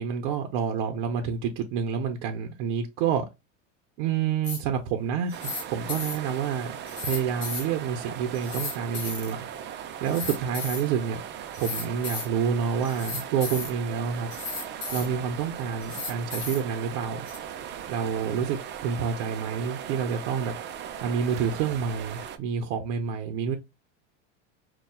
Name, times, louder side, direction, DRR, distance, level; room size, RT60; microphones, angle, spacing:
voice 1, 0.0-3.3 4.0-6.8 7.0-9.5 10.0-11.2 11.6-14.3 14.9-17.3 17.9-20.5 21.0-23.6, right 7 dB, 65° right, 0.7 m, -28 dB
sound 1, 4.4-4.6 5.3-5.6 5.9-6.2 6.9-7.7 8.3-9.3 10.1-10.9 11.5-12.3 12.8-13.7 14.3-15.1 15.8-16.6 17.3-17.4, left 4 dB, 35° left, 1.9 m, -35 dB
sound 2, 5.3-22.4, right 9 dB, 30° right, 0.4 m, -38 dB
5.5 x 2.3 x 2.2 m
supercardioid pair, 125°, 36 cm